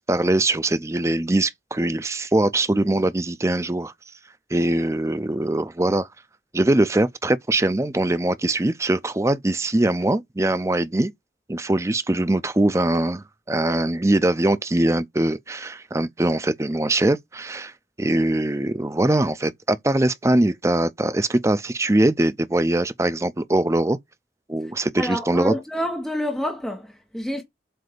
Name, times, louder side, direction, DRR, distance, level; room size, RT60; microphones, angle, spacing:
voice 1, 0.1-3.9 4.5-6.1 6.5-11.1 11.5-17.7 18.0-24.0 24.5-25.5, right 1 dB, 15° right, 0.5 m, -22 dB
voice 2, 25.0-27.4, equal, ahead, 1.3 m, -28 dB
7.8 x 2.7 x 5.0 m
head